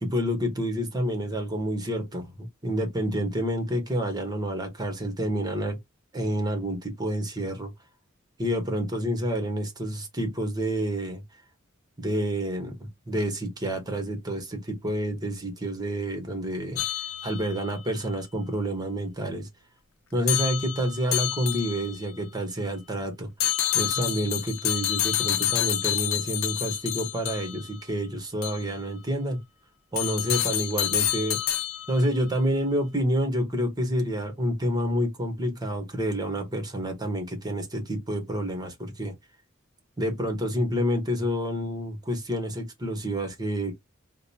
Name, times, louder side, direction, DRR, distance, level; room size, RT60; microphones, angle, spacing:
voice 1, 0.0-5.8 6.1-7.7 8.4-11.2 12.0-16.8 17.2-19.5 20.1-23.3 23.7-29.4 29.9-31.4 31.9-39.1 40.0-43.7, equal, 20° right, 1.1 m, -28 dB
sound 1, 16.8-17.7 20.3-22.0 23.4-27.7 28.4-28.6 30.0-32.1, left 11 dB, 85° left, 0.6 m, -28 dB
5.0 x 2.2 x 2.7 m
head